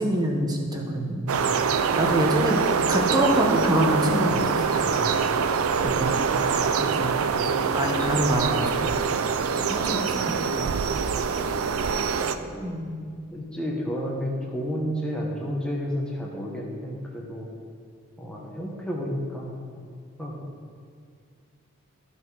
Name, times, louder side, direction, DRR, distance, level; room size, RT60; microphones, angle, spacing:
voice 1, 0.0-1.3 1.9-5.1 5.8-6.2 6.8-7.2 7.7-9.0 9.5-10.7 12.6-13.2, right 1 dB, 20° right, 0 dB, 1.1 m, -26 dB
sound 1, 1.3-12.4, right 6 dB, 80° right, 0.5 m, -24 dB
voice 2, 11.6-12.7 13.3-17.5 18.2-19.5 20.2-20.5, equal, 5° left, -3 dB, 0.9 m, -31 dB
13.0 x 5.6 x 4.7 m, 2.3 s
head